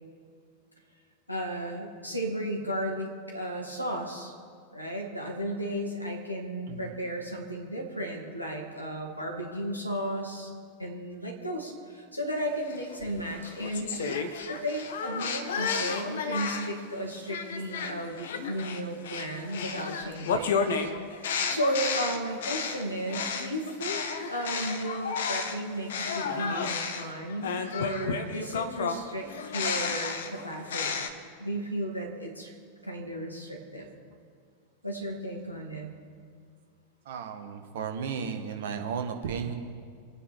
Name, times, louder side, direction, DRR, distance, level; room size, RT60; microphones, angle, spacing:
voice 1, 1.3-4.3 4.7-10.5 10.8-20.8 21.5-31.1 31.4-32.6 32.8-33.9 34.8-35.9, equal, 85° left, 0 dB, 2.5 m, -34 dB
sound 1, 12.7-16.8 17.3-25.6 25.9-31.1, left 5 dB, 60° left, 1.1 m, -32 dB
voice 2, 37.0-39.5, right 6 dB, 55° right, 5 dB, 1.4 m, -34 dB
25.0 x 9.1 x 4.5 m, 2.2 s
figure-of-eight pair, 90°, 0 cm